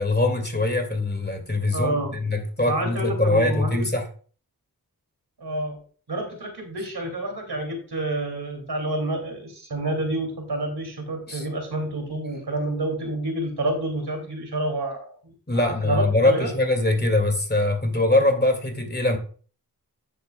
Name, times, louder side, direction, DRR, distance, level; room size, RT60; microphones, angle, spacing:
voice 1, 0.0-4.1 11.3-11.5 15.5-19.2, left 2 dB, 25° left, 5 dB, 2.2 m, -22 dB
voice 2, 1.7-2.1 2.7-3.9 5.4-5.8 6.1-16.5, right 1 dB, 80° right, 3 dB, 2.7 m, -28 dB
10.0 x 8.2 x 2.3 m, 0.42 s
cardioid pair, 40°, 38 cm